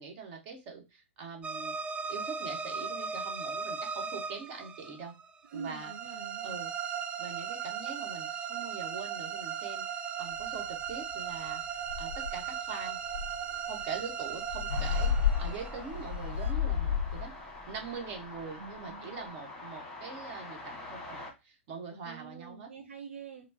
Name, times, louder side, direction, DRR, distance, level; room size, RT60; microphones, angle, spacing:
voice 1, 0.0-1.8 2.1-5.1 5.5-5.9 6.4-6.7 7.2-13.0 13.7-15.1 15.4-17.3 17.7-22.7, right 5 dB, 45° right, 2 dB, 1.3 m, -43 dB
sound 1, 1.4-16.5, right 7 dB, 15° right, 0.4 m, -37 dB
voice 2, 5.5-6.6 18.6-19.2 22.0-23.5, right 6 dB, 80° right, 4 dB, 0.5 m, -45 dB
sound 2, 10.4-10.5 10.9-11.1 11.5-11.6 11.9-12.5 13.1-17.3, left 7 dB, 65° left, 0.3 m, -32 dB
sound 3, 14.7-21.3, left 2 dB, 10° left, 1.2 m, -44 dB
4.2 x 2.1 x 2.8 m, 0.25 s
hypercardioid pair, 115°, 7 cm